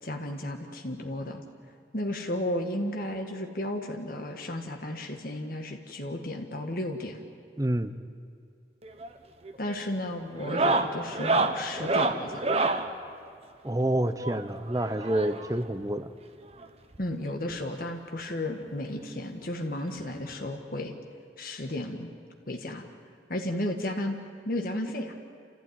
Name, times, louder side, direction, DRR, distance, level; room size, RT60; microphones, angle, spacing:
voice 1, 0.0-1.4 1.9-7.2 9.6-12.5 17.0-20.9 21.4-22.1 22.5-22.8 23.3-24.2 24.4-25.2, left 1 dB, 55° left, 3 dB, 1.7 m, -33 dB
voice 2, 7.6-7.9 13.6-16.1, right 1 dB, 20° right, 11 dB, 0.8 m, -28 dB
sound 1, 8.8-9.2 9.4-9.8 10.3-12.9 14.2-15.6 16.6-16.7 16.9-17.1 17.5-17.6 18.9-19.0 20.3-20.4, right 3 dB, 35° right, 1.1 m, -28 dB
29.0 x 15.0 x 9.4 m, 2.3 s
head